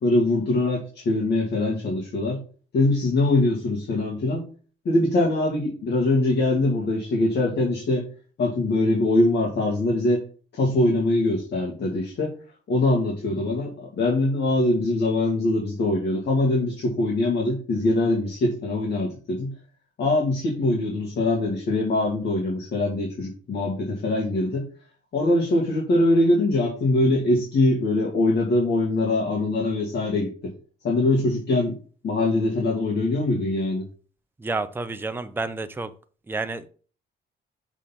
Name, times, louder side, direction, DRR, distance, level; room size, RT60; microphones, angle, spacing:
voice 1, 0.0-2.4 2.7-4.5 4.9-8.1 8.4-10.2 10.5-12.3 12.7-19.5 20.0-24.7 25.1-30.5 30.8-31.8 32.0-33.8, left 2 dB, 60° left, -2 dB, 2.0 m, -23 dB
voice 2, 34.4-35.9 36.3-36.7, right 3 dB, 10° right, 9 dB, 0.6 m, -30 dB
6.3 x 3.8 x 5.7 m, 0.39 s
cardioid pair, 90°, 20 cm